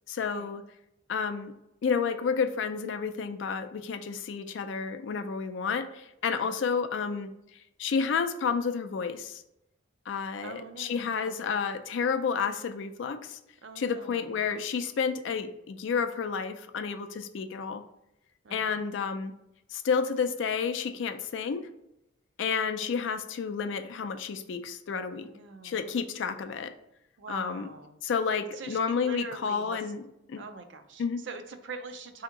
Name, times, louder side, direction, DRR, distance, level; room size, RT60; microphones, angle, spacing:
voice 1, 0.1-0.6 1.1-1.5 1.8-7.3 7.8-9.4 10.1-13.4 13.8-17.8 18.5-19.3 19.7-21.7 22.4-25.3 25.6-26.7 27.3-27.7 28.0-30.0 30.3-30.4 31.0-31.2, left 6 dB, 70° left, 8 dB, 0.4 m, -30 dB
voice 2, 6.3-6.6 10.4-11.6 13.6-14.5 18.4-18.9 25.1-26.0 27.2-28.0 28.5-29.8 30.4-32.2, right 4 dB, 65° right, 8 dB, 0.4 m, -44 dB
3.5 x 2.8 x 3.6 m, 0.85 s
head